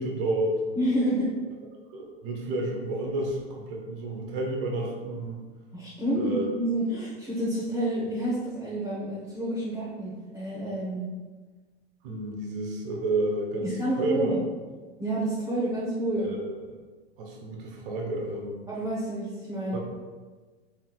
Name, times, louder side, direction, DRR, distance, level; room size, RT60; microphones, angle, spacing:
voice 1, 0.0-0.6 1.9-5.4 6.1-6.5 12.0-14.4 16.1-16.5 17.2-18.7 19.7-19.8, right 2 dB, 60° right, -1 dB, 0.9 m, -30 dB
voice 2, 0.8-1.3 5.7-11.1 13.6-14.4 15.0-16.3 18.7-19.8, right 1 dB, 10° right, -9 dB, 0.9 m, -29 dB
4.2 x 3.6 x 2.3 m, 1.3 s
hypercardioid pair, 100°, 31 cm